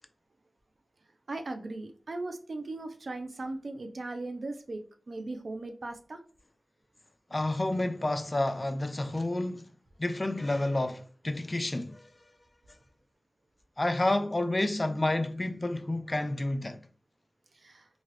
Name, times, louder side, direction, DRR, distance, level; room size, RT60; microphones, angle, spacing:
voice 1, 1.3-4.8 5.1-6.2 17.5-17.9, right 2 dB, 70° right, 0.4 m, -38 dB
voice 2, 7.3-9.7 10.0-12.1 13.8-16.8, left 2 dB, 40° left, 0.3 m, -30 dB
3.0 x 2.3 x 3.0 m
cardioid pair, 40°, 0 cm